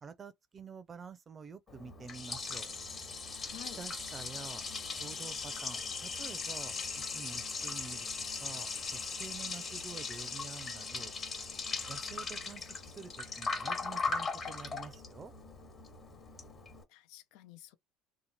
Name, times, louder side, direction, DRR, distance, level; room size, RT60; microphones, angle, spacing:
voice 1, 0.0-2.7 3.8-4.7 5.0-6.8 7.1-11.1 11.9-15.3, right 5 dB, 30° right, 0.5 m, -48 dB
Liquid, 1.7-16.8, left 4 dB, 35° left, 1.2 m, -39 dB
voice 2, 3.2-3.8 16.9-17.8, left 13 dB, 75° left, 0.5 m, -51 dB
2.9 x 2.1 x 4.0 m
supercardioid pair, 100°, 0 cm